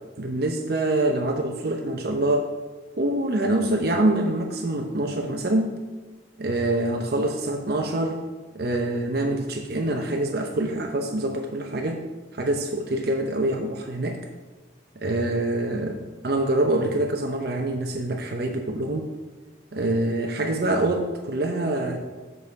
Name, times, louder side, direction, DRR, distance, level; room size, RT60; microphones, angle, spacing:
voice 1, 0.2-2.5 3.0-5.8 6.4-8.2 8.5-12.0 12.3-14.2 15.0-16.0 16.2-19.1 19.7-22.0, right 1 dB, 55° right, 3 dB, 0.7 m, -25 dB
6.1 x 5.4 x 6.7 m, 1.2 s
head